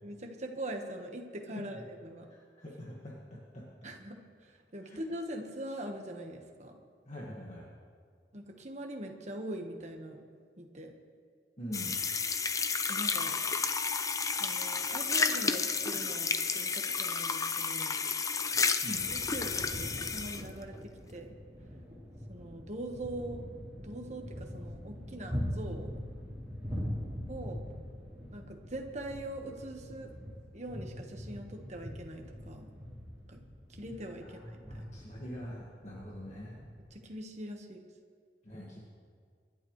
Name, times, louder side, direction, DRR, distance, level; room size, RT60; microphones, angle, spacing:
voice 1, 0.0-2.3 3.8-6.8 8.3-10.2 10.6-10.9 12.9-13.3 14.4-18.0 18.9-21.3 22.3-23.4 23.8-25.9 27.3-27.6 28.3-30.1 30.5-32.7 33.3-33.4 33.7-34.9 36.9-37.9, right 1 dB, 40° right, 2 dB, 1.4 m, -42 dB
voice 2, 2.3-3.6 4.8-5.0 7.1-7.7 11.6-12.0 18.8-19.0 26.7-26.8 34.3-36.6 38.4-38.8, equal, 40° left, -4 dB, 1.9 m, -43 dB
sound 1, 11.7-20.5, left 5 dB, 20° left, 0.5 m, -31 dB
sound 2, 18.9-36.9, equal, 10° right, 3.8 m, -42 dB
25.5 x 11.0 x 3.2 m, 2.1 s
head